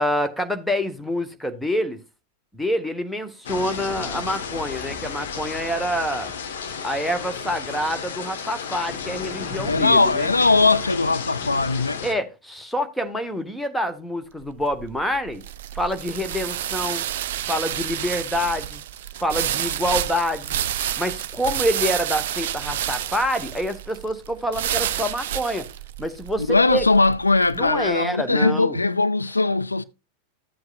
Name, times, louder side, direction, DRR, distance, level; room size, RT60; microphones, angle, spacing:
voice 1, 0.0-2.0 2.5-6.3 6.8-10.3 12.0-15.4 15.7-17.1 17.5-18.8 19.2-20.6 21.0-25.7 26.0-26.8 27.5-28.8, equal, 5° left, 1.2 m, -26 dB
sound 1, 3.4-12.1, left 6 dB, 60° left, 1.3 m, -32 dB
voice 2, 9.6-12.0 26.5-29.8, left 3 dB, 80° left, 0.4 m, -20 dB
sound 2, 14.4-27.7, right 11 dB, 55° right, 0.5 m, -29 dB
13.0 x 7.9 x 2.4 m
figure-of-eight pair, 90°, 0 cm